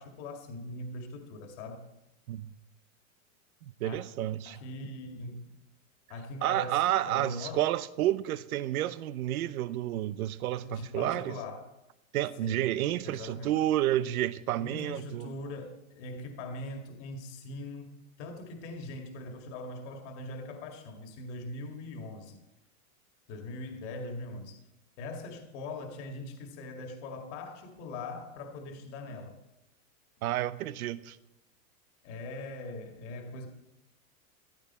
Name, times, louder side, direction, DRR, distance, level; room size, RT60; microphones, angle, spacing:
voice 1, 0.0-1.9 3.8-4.0 4.4-5.5 6.1-7.7 10.6-11.7 12.4-12.7 13.0-13.5 14.6-22.4 23.3-24.6 25.0-29.4 32.0-33.5, left 2 dB, 50° left, 2.1 m, -41 dB
voice 2, 3.6-4.6 6.4-11.4 12.1-15.3 30.2-31.2, right 13 dB, 75° right, 0.9 m, -30 dB
14.5 x 12.5 x 4.3 m
supercardioid pair, 155°, 43 cm